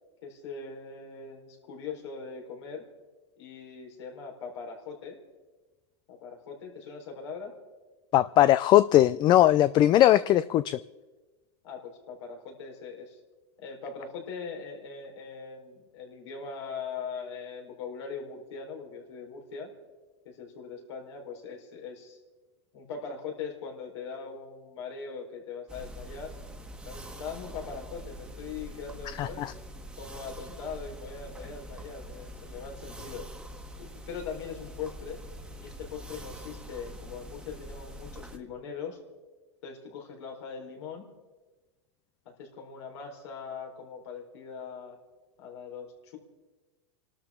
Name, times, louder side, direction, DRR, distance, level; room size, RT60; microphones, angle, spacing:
voice 1, 0.2-2.8 3.4-5.2 6.1-7.5 11.6-13.2 13.6-19.7 20.2-22.2 22.7-26.4 26.8-29.5 30.0-33.3 33.8-35.2 35.6-39.0 39.6-41.0 42.4-45.0 45.4-46.2, left 5 dB, 75° left, 1 dB, 4.3 m, -41 dB
voice 2, 8.1-10.8 29.2-29.5, left 13 dB, 30° left, 15 dB, 0.4 m, -20 dB
sound 1, 25.7-38.4, equal, 5° right, 1.5 m, -44 dB
29.0 x 12.5 x 3.7 m, 1.2 s
supercardioid pair, 125°, 15 cm